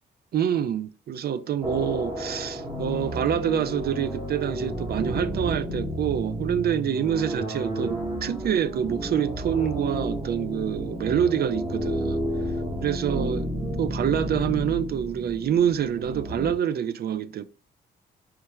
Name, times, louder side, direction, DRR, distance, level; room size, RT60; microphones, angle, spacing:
voice 1, 0.3-12.2 12.8-13.5 13.8-17.4, right 9 dB, 60° right, 0.4 m, -26 dB
sound 1, 1.6-16.5, right 1 dB, 25° right, 1.2 m, -31 dB
4.5 x 3.1 x 3.4 m
cardioid pair, 85°, 19 cm